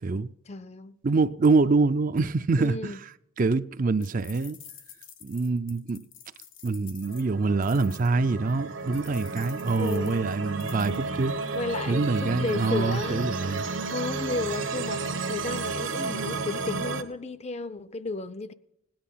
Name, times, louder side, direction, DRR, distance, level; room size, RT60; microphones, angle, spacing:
voice 1, 0.5-1.0 2.6-3.0 9.8-10.3 11.5-13.3 13.7-18.5, left 3 dB, 35° left, 0.6 m, -33 dB
voice 2, 1.0-3.0 3.4-4.6 5.2-6.0 6.6-11.3 11.9-13.7, right 3 dB, 45° right, 0.4 m, -25 dB
sound 1, 4.0-8.1 8.9-11.0, left 9 dB, 80° left, 1.7 m, -49 dB
sound 2, 7.0-17.0, right 3 dB, 75° right, 1.2 m, -32 dB
17.0 x 10.5 x 5.7 m
head